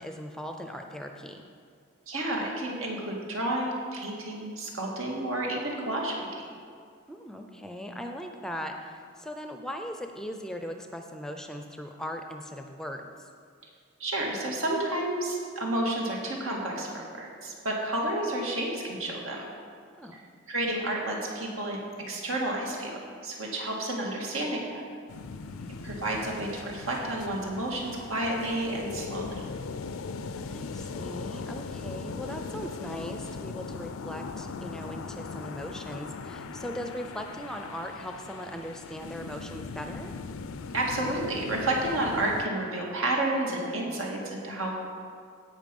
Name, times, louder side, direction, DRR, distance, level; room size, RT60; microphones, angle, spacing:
voice 1, 0.0-1.4 7.1-13.3 20.0-20.2 25.6-25.8 30.3-40.1, equal, 5° left, 4 dB, 0.5 m, -39 dB
voice 2, 2.1-6.4 14.0-19.4 20.5-21.8 22.1-23.0 23.2-24.8 25.8-29.4 40.7-44.7, right 1 dB, 85° right, -2 dB, 2.2 m, -30 dB
sound 1, 25.1-42.5, left 4 dB, 85° left, 0.5 m, -39 dB
16.5 x 5.6 x 5.4 m, 2.3 s
head